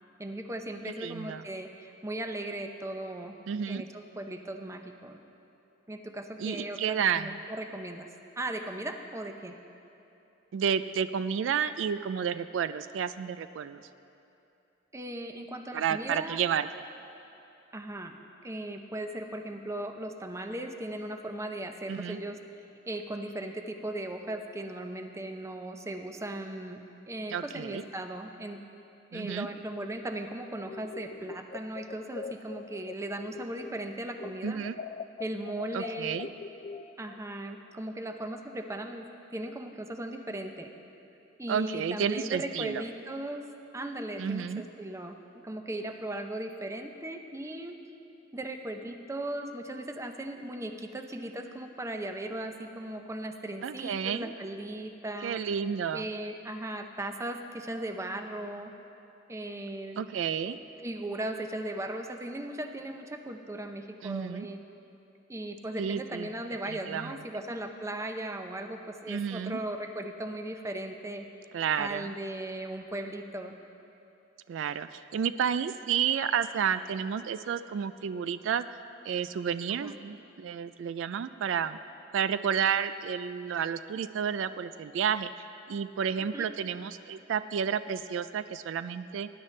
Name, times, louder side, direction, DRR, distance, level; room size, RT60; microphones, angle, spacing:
voice 1, 0.2-3.3 3.7-5.2 5.9-8.1 8.4-9.6 14.9-16.4 17.7-18.2 18.4-22.4 22.9-28.6 29.1-34.6 35.2-36.2 37.0-40.7 41.4-43.4 43.7-47.8 48.3-55.4 55.9-58.7 59.3-60.0 60.8-64.6 65.3-71.2 71.8-73.5 79.8-80.0 86.3-86.5, right 1 dB, 15° right, 5 dB, 0.6 m, -37 dB
voice 2, 1.0-1.4 3.5-3.8 6.4-7.4 10.5-13.8 15.7-16.7 21.9-22.2 27.3-27.8 29.1-29.5 34.4-34.7 35.7-36.3 41.5-42.8 44.2-44.6 53.6-54.3 55.2-56.0 60.0-60.6 64.0-64.5 65.8-66.3 66.7-67.2 69.1-69.6 71.5-72.1 74.5-78.6 79.0-81.8 82.1-85.3 85.7-89.3, right 7 dB, 80° right, 13 dB, 0.3 m, -31 dB
sound 1, 30.6-33.9 34.2-37.2, left 5 dB, 35° left, 0.3 m, -43 dB
19.5 x 10.5 x 3.2 m, 2.8 s
head